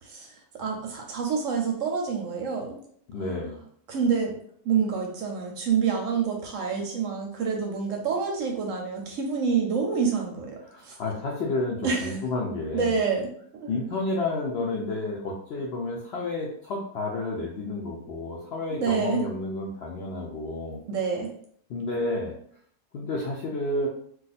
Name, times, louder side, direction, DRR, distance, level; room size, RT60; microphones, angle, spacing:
voice 1, 0.0-2.8 3.2-3.3 3.9-4.4 4.6-11.0 11.8-12.2 12.7-13.7 18.7-19.2 20.9-21.3, right 6 dB, 65° right, 1 dB, 0.8 m, -27 dB
voice 2, 3.1-3.6 10.7-13.0 13.7-20.8 21.7-22.4 22.9-23.9, left 2 dB, 70° left, -2 dB, 0.6 m, -30 dB
2.5 x 2.4 x 4.0 m, 0.62 s
omnidirectional pair, 1.6 m